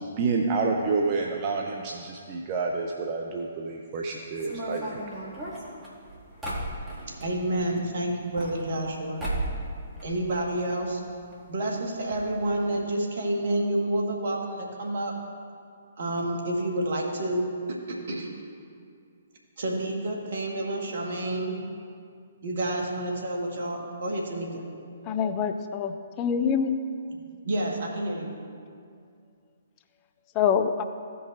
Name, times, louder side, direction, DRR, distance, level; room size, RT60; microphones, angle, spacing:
voice 1, 0.0-5.0, right 4 dB, 35° right, 1 dB, 0.6 m, -29 dB
sound 1, 4.4-7.3 8.1-8.9 9.2-9.7 10.0-10.8 11.0-11.1 11.3-11.4 12.1-12.2 12.5-12.7, right 1 dB, 10° right, 2.0 m, -34 dB
voice 2, 6.9-9.2 10.0-11.0 11.5-15.1 16.0-17.4 17.9-18.3 19.6-21.6 22.4-24.6 27.4-28.3, right 1 dB, 60° right, 0 dB, 1.5 m, -29 dB
voice 3, 25.0-26.7 30.3-30.8, left 7 dB, 30° left, 8 dB, 0.4 m, -25 dB
16.0 x 5.4 x 2.5 m, 2.3 s
figure-of-eight pair, 130°, 0 cm